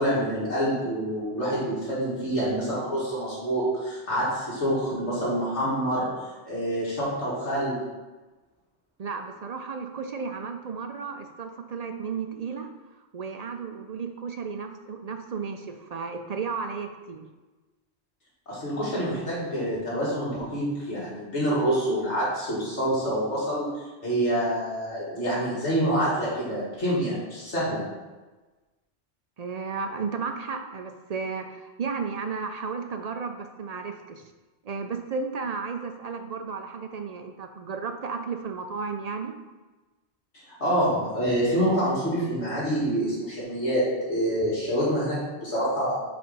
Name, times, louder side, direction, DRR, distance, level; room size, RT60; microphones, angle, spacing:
voice 1, 0.0-6.1 6.4-7.8 18.5-27.8 40.5-46.0, equal, 80° left, -8 dB, 2.8 m, -27 dB
voice 2, 9.0-17.2 29.4-34.3 34.6-39.4, right 5 dB, 55° right, 6 dB, 0.4 m, -34 dB
5.1 x 4.8 x 5.4 m, 1.2 s
omnidirectional pair, 1.2 m